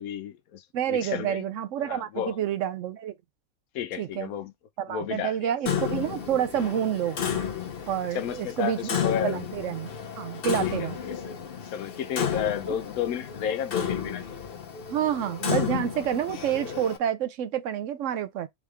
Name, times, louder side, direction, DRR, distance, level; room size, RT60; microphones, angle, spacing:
voice 1, 0.0-0.6 0.9-1.4 1.8-2.4 3.7-4.5 4.9-5.5 8.1-9.4 10.6-11.2 11.6-14.2, left 9 dB, 85° left, 1.1 m, -32 dB
voice 2, 0.7-3.1 4.0-4.3 4.8-7.2 7.9-9.0 9.2-9.9 10.2-11.0 12.7-12.8 14.9-18.5, right 10 dB, 70° right, 0.9 m, -28 dB
Clock, 5.7-17.0, left 8 dB, 50° left, 0.8 m, -32 dB
3.6 x 3.5 x 3.2 m
omnidirectional pair, 1.5 m